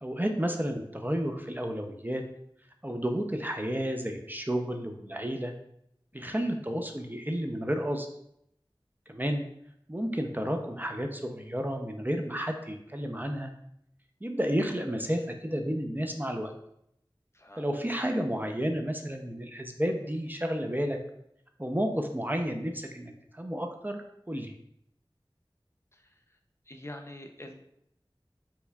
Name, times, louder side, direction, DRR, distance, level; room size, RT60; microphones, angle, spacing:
voice 1, 0.0-2.2 2.8-5.5 6.1-8.1 9.1-9.4 9.9-13.5 14.2-16.5 17.6-21.0 21.6-24.5, equal, 20° right, 4 dB, 0.5 m, -31 dB
voice 2, 6.1-6.6 17.3-17.7 25.9-26.2 26.7-27.5, left 1 dB, 30° left, 4 dB, 0.5 m, -46 dB
4.5 x 4.4 x 2.2 m, 0.75 s
wide cardioid pair, 40°, 9 cm